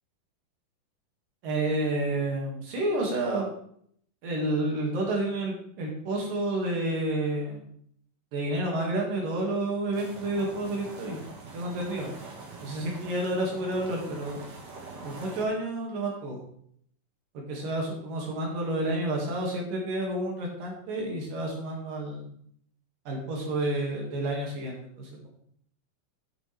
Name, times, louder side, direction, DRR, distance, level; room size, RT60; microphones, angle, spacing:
voice 1, 1.4-3.5 4.2-7.6 8.3-11.2 11.5-12.1 12.6-14.4 15.0-16.4 17.3-22.3 23.1-25.3, right 1 dB, 80° right, -1 dB, 4.0 m, -30 dB
sound 1, 9.9-15.4, right 3 dB, 60° right, 3.2 m, -44 dB
10.0 x 9.2 x 3.5 m, 0.65 s
omnidirectional pair, 3.8 m